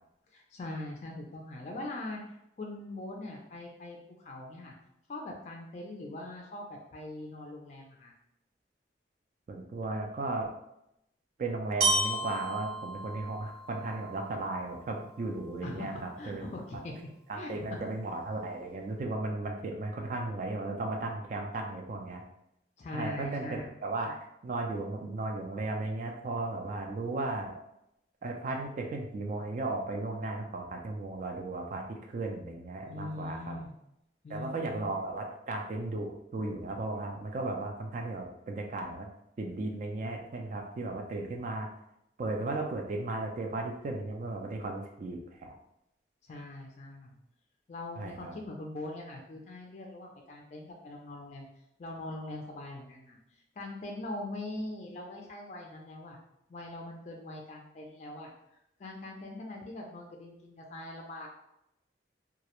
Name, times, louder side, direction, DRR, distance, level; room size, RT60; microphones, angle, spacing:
voice 1, 0.3-2.2 2.6-4.7 5.1-8.1 15.6-15.9 16.2-16.9 17.4-17.5 22.8-23.7 32.9-33.7 34.2-34.8 46.3-47.2 47.7-51.5 51.8-53.2 53.6-56.2 56.5-58.3 58.8-61.3, left 2 dB, 40° left, 0 dB, 0.3 m, -42 dB
voice 2, 9.5-10.5 11.4-16.5 17.3-22.2 22.9-24.2 24.4-27.5 28.2-33.6 34.3-39.1 39.4-41.7 42.2-45.5 48.0-48.4, right 2 dB, 45° right, 2 dB, 0.3 m, -35 dB
Glockenspiel, 11.8-15.8, right 2 dB, 65° right, 0.8 m, -34 dB
2.3 x 2.0 x 2.9 m, 0.81 s
head